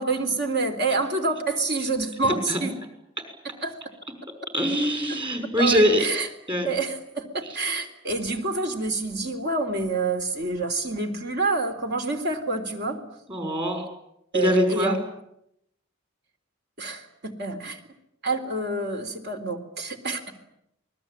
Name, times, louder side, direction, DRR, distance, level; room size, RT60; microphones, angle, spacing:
voice 1, 0.0-2.7 3.4-3.8 5.1-5.2 5.6-6.3 6.6-13.0 14.3-15.0 16.8-17.8 18.2-20.2, right 3 dB, 60° right, 6 dB, 3.8 m, -27 dB
voice 2, 4.5-6.1 6.5-6.7 13.3-13.8 14.3-15.0, equal, 25° right, 6 dB, 6.3 m, -23 dB
28.0 x 21.0 x 9.0 m, 0.78 s
head